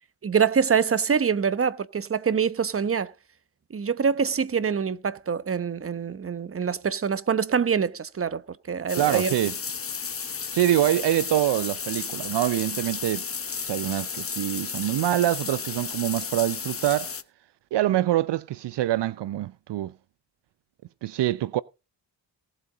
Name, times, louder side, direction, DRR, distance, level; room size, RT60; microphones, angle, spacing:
voice 1, 0.2-3.1 3.7-8.4 8.7-9.3, right 6 dB, 30° right, 0.9 m, -25 dB
sound 1, 8.9-17.2, left 6 dB, 30° left, 0.9 m, -33 dB
voice 2, 9.0-9.6 10.5-13.3 13.6-17.1 17.7-19.9 21.0-21.6, right 14 dB, 75° right, 0.5 m, -25 dB
18.0 x 8.2 x 3.9 m
wide cardioid pair, 115°, 43 cm